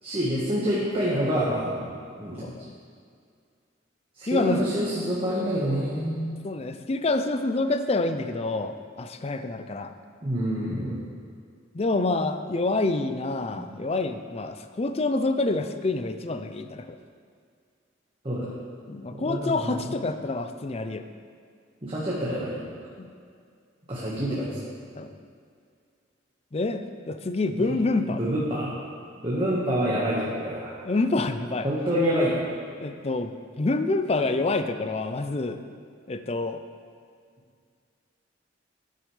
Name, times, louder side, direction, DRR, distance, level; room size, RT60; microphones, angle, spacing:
voice 1, 0.0-1.9 2.2-2.5 4.2-6.4 10.2-11.0 13.5-13.7 18.2-18.5 19.1-19.8 21.8-22.6 23.9-24.6 27.6-27.7 28.2-28.7 29.2-30.7 31.6-32.4, equal, 30° right, -7 dB, 1.5 m, -27 dB
voice 2, 2.4-2.8 4.3-4.7 6.4-9.9 11.7-17.0 18.9-21.0 23.0-23.1 25.0-25.1 26.5-28.2 30.8-31.7 32.8-35.6 36.1-36.6, left 2 dB, 35° left, 9 dB, 0.5 m, -27 dB
13.0 x 9.3 x 3.3 m, 2.2 s
head